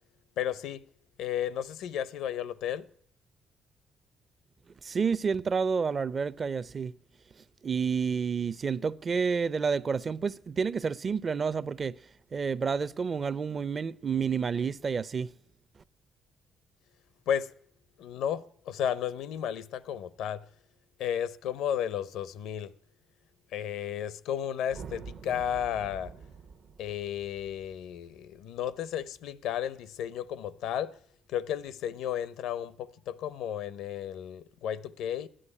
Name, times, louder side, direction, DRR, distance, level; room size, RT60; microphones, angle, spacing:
voice 1, 0.4-0.8 1.2-2.9 17.3-17.5 18.0-20.4 21.0-22.7 23.5-26.1 26.8-31.0 31.3-35.3, left 9 dB, 85° left, 0.7 m, -33 dB
voice 2, 4.8-6.9 7.6-12.0 12.3-15.3, right 5 dB, 40° right, 0.5 m, -29 dB
sound 1, 24.7-29.1, right 6 dB, 65° right, 0.9 m, -47 dB
14.0 x 10.0 x 9.9 m
cardioid pair, 90°, 0 cm